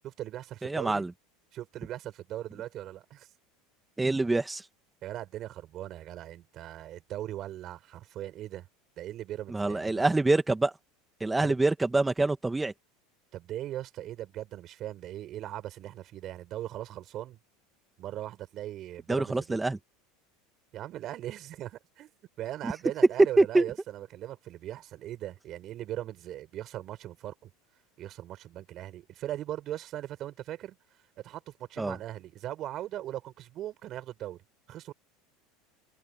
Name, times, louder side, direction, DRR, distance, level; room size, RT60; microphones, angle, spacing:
voice 1, 0.0-1.1 1.5-3.3 5.0-8.7 9.0-10.0 11.4-11.6 13.3-17.4 18.0-19.6 20.7-22.1 22.4-27.5 28.0-30.8 31.2-34.4 34.7-34.9, right 13 dB, 50° right, 7.0 m, -39 dB
voice 2, 0.6-1.1 4.0-4.6 9.5-10.7 11.2-12.7 19.1-19.8 23.4-23.6 31.8-32.0, right 2 dB, 10° right, 2.4 m, -26 dB
open air
hypercardioid pair, 90°, 0 cm